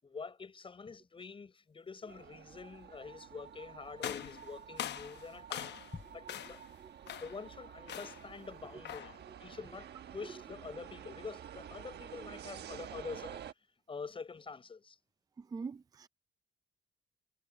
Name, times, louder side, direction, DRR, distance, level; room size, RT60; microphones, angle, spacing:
voice 1, 0.0-6.6 7.2-9.1 9.4-13.4 13.9-15.0, left 5 dB, 25° left, 6.4 m, -46 dB
sound 1, 2.1-13.5, right 9 dB, 60° right, 1.2 m, -50 dB
sound 2, 4.0-6.0 6.3-6.7 7.1-7.5 7.9-8.3 8.8-9.2, left 11 dB, 60° left, 0.9 m, -42 dB
voice 2, 15.5-16.1, right 5 dB, 20° right, 0.4 m, -42 dB
cardioid pair, 150°, 20 cm